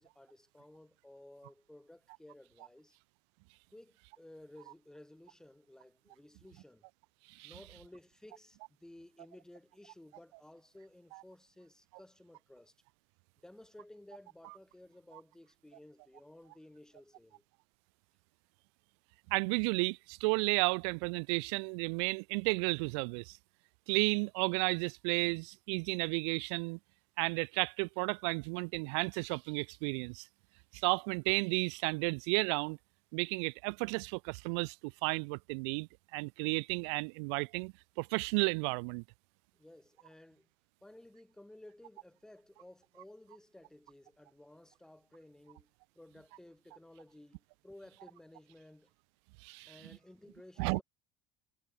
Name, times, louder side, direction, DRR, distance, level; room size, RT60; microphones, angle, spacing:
voice 1, 0.0-3.0 3.7-6.8 7.4-12.8 13.4-17.4 39.6-40.5 40.8-48.9 49.6-50.8, left 1 dB, 5° left, 6.5 m, -56 dB
voice 2, 19.3-23.4 23.9-26.8 27.2-30.3 30.7-32.8 33.1-39.0 49.4-49.7 50.6-50.8, right 33 dB, 85° right, 1.7 m, -33 dB
cardioid pair, 155°, 14 cm